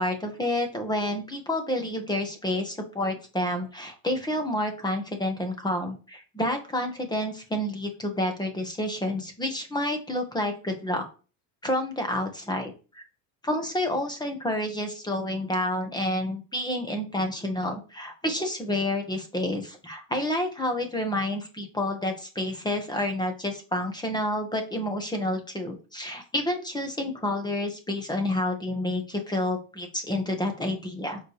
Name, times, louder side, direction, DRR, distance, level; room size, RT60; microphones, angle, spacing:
voice 1, 0.0-11.0 11.6-13.0 13.4-31.2, left 1 dB, 10° left, 5 dB, 1.4 m, -29 dB
7.6 x 4.8 x 3.3 m, 0.35 s
cardioid pair, 135°, 46 cm